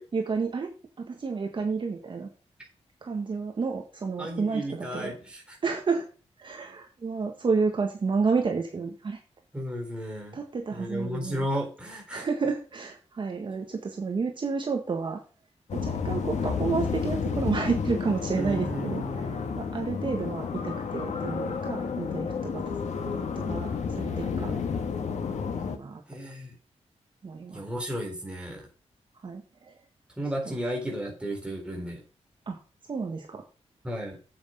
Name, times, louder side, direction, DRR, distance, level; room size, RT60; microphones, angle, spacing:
voice 1, 0.1-0.7 1.0-2.3 3.0-5.1 5.6-6.1 6.4-9.2 10.3-11.5 12.1-15.2 15.7-19.0 19.6-22.8 23.3-24.6 25.6-26.0 27.2-27.7 29.2-29.7 32.5-32.6 32.9-33.4, right 4 dB, 45° right, 2 dB, 1.6 m, -30 dB
voice 2, 4.2-5.6 9.5-10.4 10.7-12.3 18.3-19.6 26.1-26.5 27.5-28.6 30.2-32.0 33.8-34.2, equal, 10° right, 0 dB, 3.8 m, -34 dB
sound 1, 15.7-25.8, left 5 dB, 80° left, 1.5 m, -31 dB
8.5 x 8.2 x 5.2 m, 0.36 s
wide cardioid pair, 175°, 12 cm